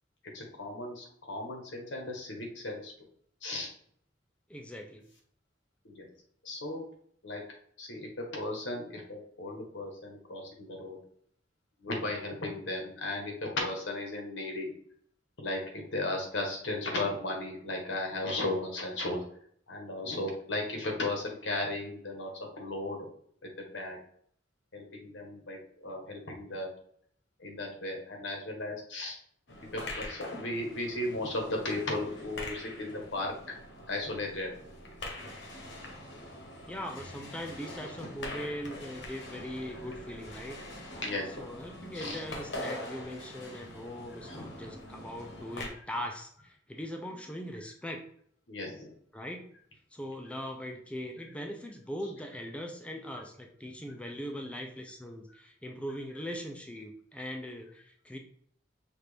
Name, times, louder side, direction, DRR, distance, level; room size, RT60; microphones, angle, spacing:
voice 1, 0.3-2.9 3.4-3.7 5.8-6.1 6.4-6.8 7.2-7.4 7.8-11.0 11.8-14.7 15.4-19.2 19.7-22.3 22.6-23.1 23.4-24.0 24.7-26.7 27.4-29.2 29.7-33.3 33.9-34.5 41.0-41.4 41.9-42.2 44.2-44.5 48.5-48.9, left 2 dB, 90° left, 1 dB, 1.3 m, -35 dB
voice 2, 4.5-5.0 36.7-40.6 41.4-48.0 49.1-49.5 49.9-58.2, equal, 5° left, 2 dB, 0.4 m, -40 dB
sound 1, 29.5-45.7, left 1 dB, 70° left, 1.1 m, -43 dB
5.8 x 2.5 x 3.4 m, 0.63 s
head